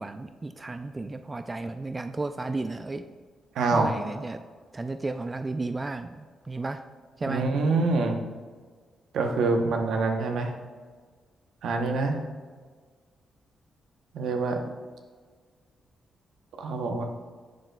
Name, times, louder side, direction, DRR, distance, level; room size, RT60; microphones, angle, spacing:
voice 1, 0.0-3.0 3.7-4.4 4.7-6.8 7.2-7.5, right 3 dB, 30° right, 9 dB, 0.3 m, -33 dB
voice 2, 3.5-3.9 7.3-8.2 9.1-10.5 11.6-12.2 14.1-14.6 16.6-17.0, right 3 dB, 75° right, 4 dB, 0.8 m, -25 dB
11.0 x 3.9 x 2.2 m, 1.5 s
supercardioid pair, 55°, 0 cm